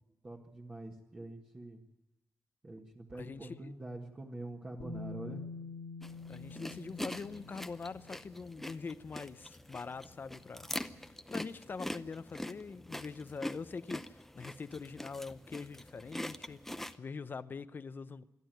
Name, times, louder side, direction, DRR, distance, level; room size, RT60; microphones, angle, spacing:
voice 1, 0.2-1.8 2.6-5.4, right 2 dB, 25° right, 1.7 m, -45 dB
voice 2, 3.1-3.7 6.3-10.7 11.3-18.3, left 4 dB, 40° left, 0.8 m, -44 dB
Bass guitar, 4.8-8.7 9.9-10.0, left 3 dB, 85° left, 3.0 m, -46 dB
sound 1, 6.0-17.0, left 1 dB, 5° left, 0.7 m, -44 dB
26.5 x 11.5 x 9.2 m
wide cardioid pair, 150°, 5 cm